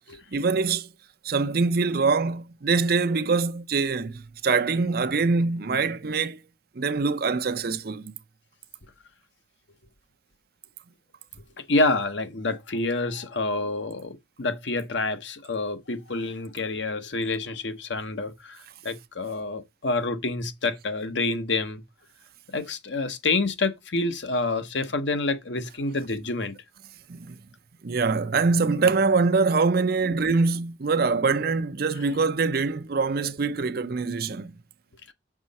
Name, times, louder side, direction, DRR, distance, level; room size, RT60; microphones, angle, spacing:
voice 1, 0.3-0.9 1.2-6.4 6.8-8.1 27.1-27.4 27.8-34.5, right 4 dB, 55° right, 0.6 m, -24 dB
voice 2, 11.6-21.8 22.5-26.5, left 3 dB, 80° left, 1.1 m, -28 dB
6.2 x 6.0 x 4.1 m
head